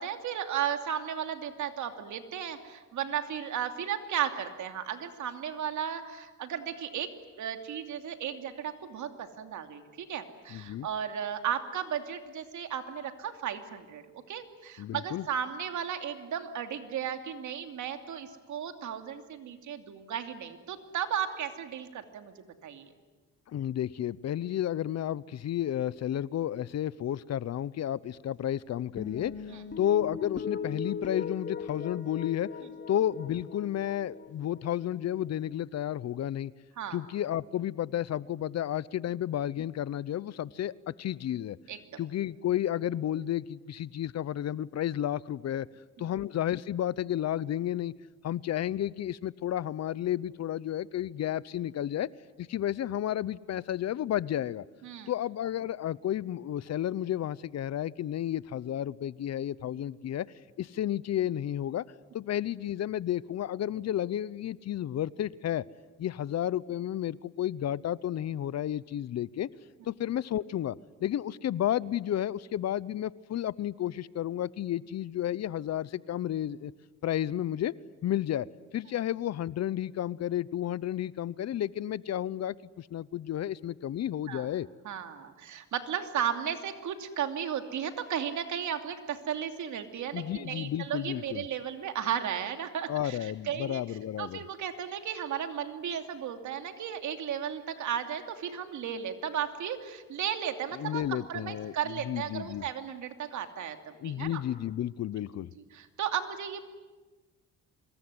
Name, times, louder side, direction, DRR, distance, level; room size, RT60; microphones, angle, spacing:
voice 1, 0.0-7.1 7.4-14.0 14.3-22.3 22.6-22.9 36.8-37.0 41.7-41.8 46.0-46.1 54.8-55.1 84.3-84.5 84.8-93.8 94.2-103.8 104.0-104.4 105.7-106.6, right 9 dB, 75° right, 7 dB, 2.7 m, -35 dB
voice 2, 10.5-10.9 14.8-15.3 23.5-29.4 29.8-32.5 32.9-36.5 36.9-41.6 42.0-45.7 46.0-47.9 48.2-52.1 52.4-54.6 55.1-60.3 60.6-61.8 62.1-65.6 66.0-69.5 69.9-70.8 71.0-76.7 77.0-77.7 78.0-78.5 78.7-84.7 90.1-91.4 92.9-94.4 100.7-102.7 104.0-105.5, left 11 dB, 60° left, 20 dB, 0.8 m, -32 dB
sound 1, 29.0-35.5, left 6 dB, 40° left, 2.6 m, -39 dB
25.5 x 22.5 x 9.7 m, 1.3 s
cardioid pair, 90°, 30 cm